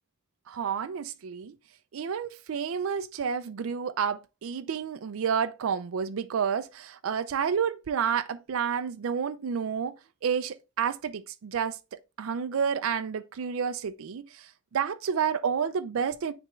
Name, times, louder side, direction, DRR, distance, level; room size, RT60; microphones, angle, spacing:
voice 1, 0.5-1.5 1.9-9.9 10.2-11.8 12.2-16.3, right 7 dB, 90° right, 0.4 m, -30 dB
9.0 x 3.4 x 3.0 m
head